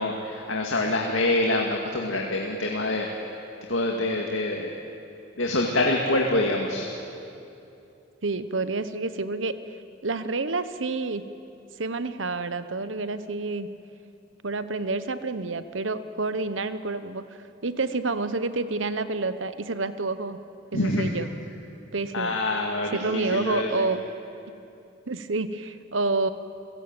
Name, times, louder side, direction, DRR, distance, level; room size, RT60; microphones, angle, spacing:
voice 1, 0.0-3.1 3.7-4.7 5.4-6.9 20.7-21.1 22.1-23.9, left 2 dB, 90° left, 0 dB, 2.2 m, -26 dB
voice 2, 8.2-9.5 10.0-11.2 11.8-13.7 14.4-17.2 17.6-20.4 20.7-21.3 21.9-22.4 22.9-24.0 25.1-26.3, right 3 dB, 75° right, 12 dB, 1.2 m, -28 dB
30.0 x 16.5 x 9.0 m, 2.7 s
head